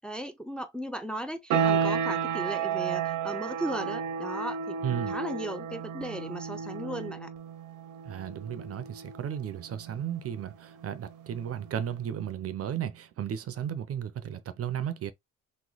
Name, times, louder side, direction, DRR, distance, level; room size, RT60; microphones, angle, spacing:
voice 1, 0.0-7.3, equal, 5° left, 0.5 m, -36 dB
sound 1, 1.5-12.0, right 7 dB, 90° right, 0.7 m, -33 dB
voice 2, 4.8-5.2 8.1-15.1, right 9 dB, 50° right, 0.5 m, -34 dB
3.0 x 2.1 x 3.9 m
cardioid pair, 90°, 30 cm